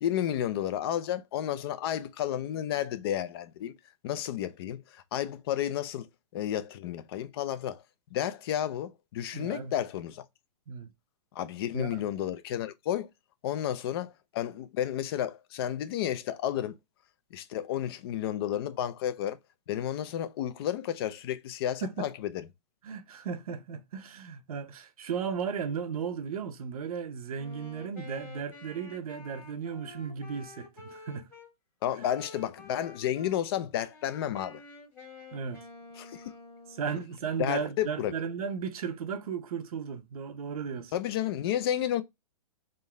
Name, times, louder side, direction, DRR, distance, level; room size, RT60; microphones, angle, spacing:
voice 1, 0.0-3.7 4.0-4.8 5.1-6.1 6.3-7.8 8.1-10.2 11.4-13.1 13.4-16.8 17.3-19.4 19.7-22.3 31.8-34.6 36.0-36.2 37.4-38.1 40.9-42.0, left 11 dB, 40° left, 0.5 m, -31 dB
voice 2, 9.3-9.7 10.7-10.9 11.7-12.0 21.8-22.1 22.8-31.3 35.3-35.6 36.7-40.9, right 6 dB, 65° right, 0.7 m, -35 dB
Wind instrument woodwind instrument, 27.3-31.5 32.0-33.4 33.8-37.0, left 3 dB, 10° left, 1.4 m, -49 dB
3.7 x 2.7 x 3.3 m
hypercardioid pair, 150°, 20 cm